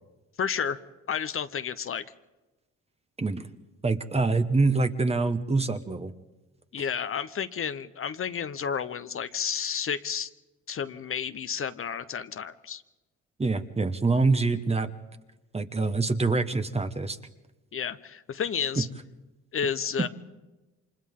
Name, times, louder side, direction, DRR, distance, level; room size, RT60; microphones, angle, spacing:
voice 1, 0.4-0.8 1.1-2.0 6.7-10.3 10.7-12.8 17.7-18.9 19.5-20.1, left 7 dB, 45° left, 11 dB, 0.9 m, -31 dB
voice 2, 3.8-6.1 13.4-14.9 15.5-17.2, right 3 dB, 20° right, 9 dB, 1.2 m, -25 dB
29.0 x 26.0 x 3.7 m, 1.1 s
cardioid pair, 90°, 30 cm